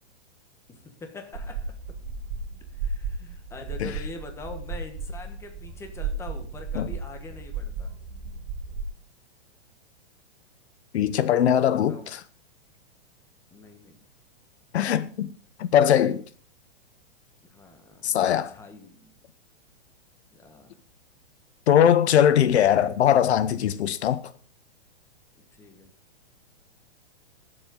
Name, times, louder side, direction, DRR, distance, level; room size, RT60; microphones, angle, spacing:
voice 1, 0.7-1.7 2.7-7.9 11.7-12.1 13.5-14.0 17.4-19.1 20.3-20.7 25.5-25.9, left 3 dB, 10° left, 1.3 m, -44 dB
sound 1, 1.3-8.8, right 4 dB, 40° right, 2.7 m, -34 dB
voice 2, 10.9-12.2 14.7-15.3 15.6-16.2 18.0-18.5 21.7-24.2, left 9 dB, 75° left, 1.0 m, -21 dB
19.0 x 7.8 x 3.8 m
hypercardioid pair, 165°, 33 cm